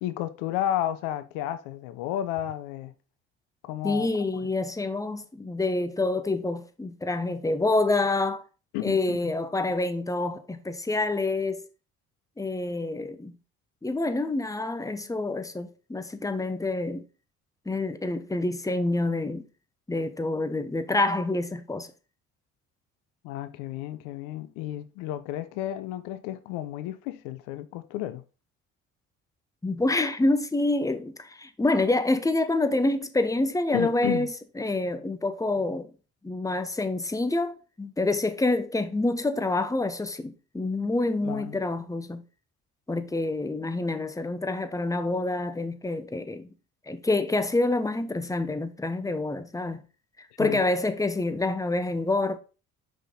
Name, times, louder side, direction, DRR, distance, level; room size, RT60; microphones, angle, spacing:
voice 1, 0.0-2.9 3.6-4.1 4.3-4.4 8.7-9.2 23.2-28.2 33.7-34.3 41.2-41.6 50.4-50.6, left 12 dB, 80° left, 0.8 m, -32 dB
voice 2, 3.8-8.4 8.8-11.7 12.4-13.3 13.8-17.0 17.7-19.4 19.9-21.9 29.6-35.9 36.2-42.2 42.9-46.5 46.9-49.8 50.4-52.4, left 2 dB, 10° left, 1.0 m, -27 dB
5.9 x 5.3 x 3.8 m
hypercardioid pair, 60°, 35 cm